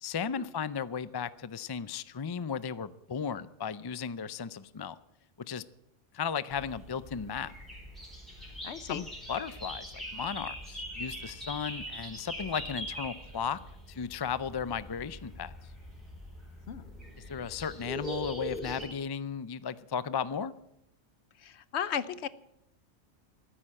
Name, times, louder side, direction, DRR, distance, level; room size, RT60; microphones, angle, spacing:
voice 1, 0.0-5.0 5.5-5.6 6.1-7.5 8.9-13.6 13.9-15.5 17.3-20.5, left 7 dB, 40° left, 16 dB, 0.3 m, -35 dB
sound 1, 6.5-18.8, equal, ahead, 4.7 m, -42 dB
voice 2, 8.6-9.0 16.7-16.9 21.4-22.3, left 8 dB, 70° left, 17 dB, 1.0 m, -35 dB
14.0 x 10.0 x 8.8 m, 0.81 s
omnidirectional pair, 1.2 m